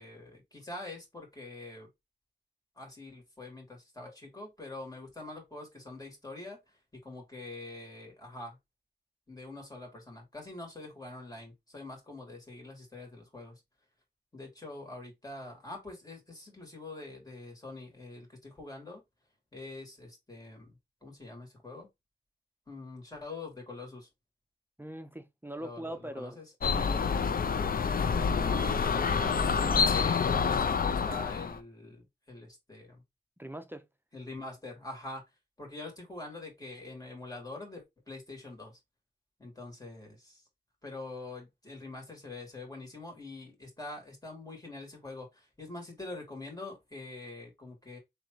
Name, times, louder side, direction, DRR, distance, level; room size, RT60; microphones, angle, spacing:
voice 1, 0.0-1.9 2.8-8.6 9.3-13.6 14.3-19.0 19.5-21.9 22.7-24.1 25.6-26.4 28.4-33.0 34.1-35.2 35.6-38.8 39.4-40.4 40.8-48.0, left 2 dB, 20° left, 2.8 m, -45 dB
voice 2, 24.8-26.4 26.8-27.2 33.4-33.9, right 1 dB, 10° right, 0.6 m, -42 dB
sound 1, 26.6-31.6, left 5 dB, 50° left, 0.5 m, -27 dB
3.7 x 3.4 x 3.1 m
wide cardioid pair, 75°, 19 cm